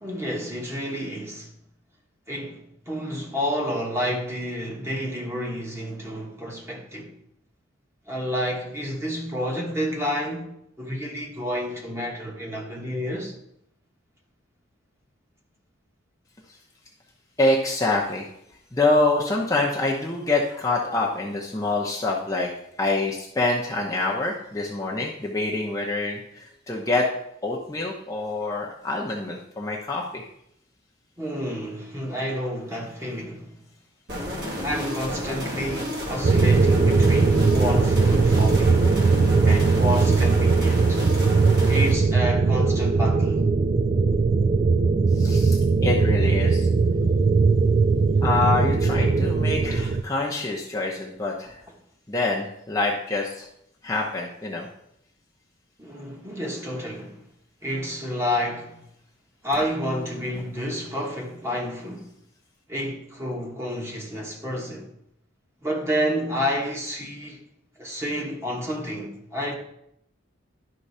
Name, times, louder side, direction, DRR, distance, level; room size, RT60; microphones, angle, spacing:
voice 1, 0.0-1.5 2.3-7.1 8.1-10.5 10.8-13.3 31.2-33.6 34.6-39.0 39.4-41.0 41.7-43.4 55.8-57.2 57.6-58.8 59.4-62.1 62.7-64.9 65.6-67.4 67.8-69.5, equal, 15° right, 1.2 m, -30 dB
voice 2, 17.4-18.3 18.7-22.5 22.8-27.1 27.4-30.3 45.1-46.7 48.2-51.6 52.1-53.5 53.8-54.7, left 2 dB, 15° left, 0.8 m, -26 dB
sound 1, 34.1-41.9, equal, 55° right, 2.2 m, -31 dB
sound 2, 36.2-50.0, right 4 dB, 35° right, 0.3 m, -19 dB
11.0 x 3.8 x 5.5 m
head